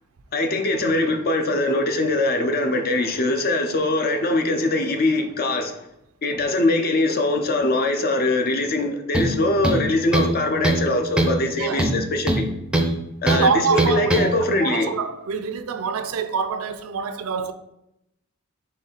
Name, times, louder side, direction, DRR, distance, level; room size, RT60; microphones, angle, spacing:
voice 1, 0.3-5.8 6.2-12.4 13.2-14.9, left 2 dB, 45° left, 0.6 m, -22 dB
sound 1, 9.1-9.4 9.6-10.4 10.6-10.9 11.2-11.4 11.8-12.9 13.3-13.4 13.8-14.3, right 1 dB, 5° right, 0.5 m, -21 dB
voice 2, 11.6-11.9 13.3-17.5, right 5 dB, 70° right, 0.4 m, -25 dB
4.2 x 3.2 x 3.9 m
head